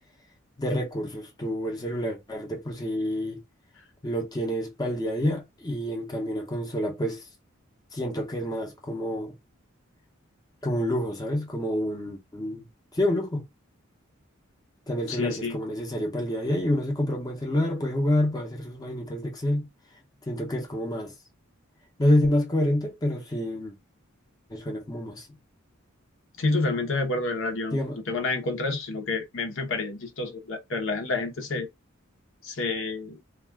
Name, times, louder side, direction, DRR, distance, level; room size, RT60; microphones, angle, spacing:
voice 1, 0.6-3.4 4.0-7.2 7.9-9.3 10.6-12.6 12.9-13.4 14.9-19.7 20.3-21.1 22.0-23.7 24.5-25.3 27.7-28.0, left 1 dB, 20° left, 0.7 m, -28 dB
voice 2, 15.1-15.6 26.4-31.7 32.4-33.2, left 3 dB, 65° left, 0.8 m, -29 dB
2.4 x 2.3 x 3.4 m
head